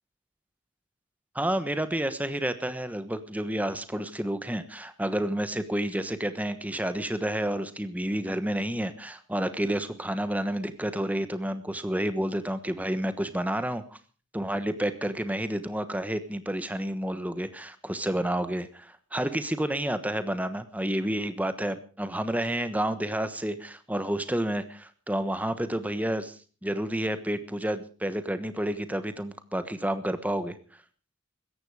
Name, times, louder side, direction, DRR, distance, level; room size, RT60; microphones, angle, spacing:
voice 1, 1.3-14.0 14.3-26.4 26.6-30.5, right 1 dB, 10° right, 11 dB, 1.2 m, -30 dB
16.5 x 14.0 x 5.0 m, 0.39 s
head